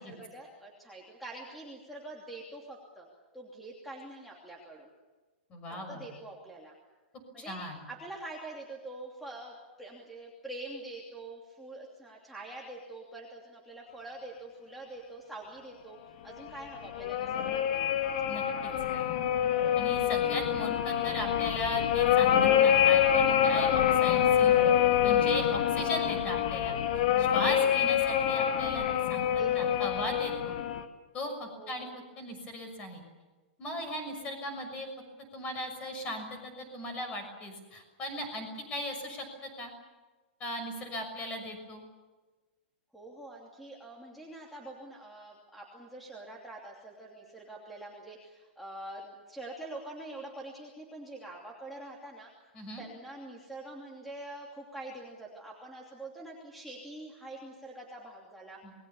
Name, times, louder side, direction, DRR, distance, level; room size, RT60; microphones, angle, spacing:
voice 1, 0.0-3.1 3.3-4.9 5.7-6.7 7.3-7.6 7.9-16.0 16.2-17.9 27.4-27.8 29.4-30.0 31.6-31.9 42.9-52.3 52.8-58.6, right 2 dB, ahead, -2 dB, 2.8 m, -45 dB
voice 2, 5.5-6.1 7.4-7.8 18.3-18.4 18.9-19.1 19.8-22.3 22.6-24.7 25.0-26.7 27.2-28.8 29.1-29.3 29.5-30.5 31.1-31.9 32.2-33.0 33.6-34.9 35.3-39.7 40.4-41.8 52.5-52.8 58.6-58.7, left 1 dB, 20° left, 6 dB, 6.3 m, -38 dB
sound 1, 16.5-30.8, left 9 dB, 45° left, 2.0 m, -26 dB
27.5 x 21.0 x 7.1 m, 1.3 s
supercardioid pair, 170°, 6 cm